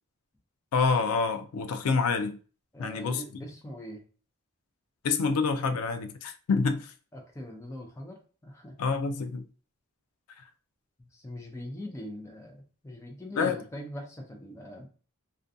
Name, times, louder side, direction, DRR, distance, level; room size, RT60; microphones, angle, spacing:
voice 1, 0.7-2.4 2.8-3.2 5.0-6.9 8.8-9.4 13.4-13.6, left 4 dB, 80° left, 0.4 m, -27 dB
voice 2, 2.7-4.0 7.1-8.7 11.0-14.9, equal, 15° left, 0.5 m, -42 dB
2.4 x 2.2 x 2.6 m
head